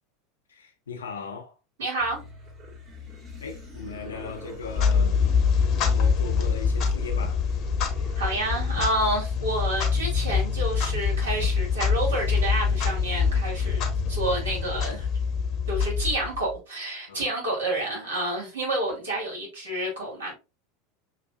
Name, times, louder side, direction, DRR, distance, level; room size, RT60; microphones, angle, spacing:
voice 1, 0.5-1.5 3.4-5.2 5.6-7.5 17.1-17.3, left 5 dB, 80° left, 0.9 m, -38 dB
voice 2, 1.8-2.2 8.1-15.1 15.7-20.3, right 1 dB, 75° right, 2.3 m, -29 dB
sound 1, 2.0-10.0, right 1 dB, 40° right, 1.8 m, -41 dB
Clock, 4.6-16.6, left 6 dB, 45° left, 1.0 m, -25 dB
6.5 x 2.6 x 2.4 m
figure-of-eight pair, 80°, 0 cm